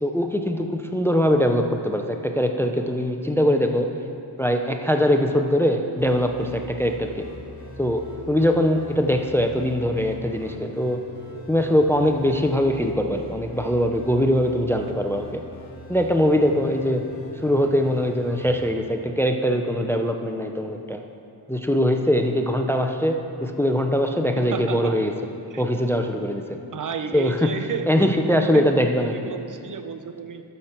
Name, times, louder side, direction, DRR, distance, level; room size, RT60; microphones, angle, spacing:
voice 1, 0.0-3.9 4.4-7.3 7.8-11.0 11.5-15.4 15.9-17.1 17.4-21.0 21.5-25.1 25.6-26.6 27.1-27.5 27.9-29.3, equal, 5° left, 5 dB, 0.4 m, -22 dB
sound 1, 6.0-18.7, left 2 dB, 60° left, 2.1 m, -42 dB
voice 2, 24.4-24.9 25.5-25.6 26.7-27.9 28.5-28.7 29.1-30.4, right 6 dB, 50° right, 8 dB, 0.5 m, -32 dB
11.5 x 6.7 x 4.4 m, 2.6 s
wide cardioid pair, 100°, 40 cm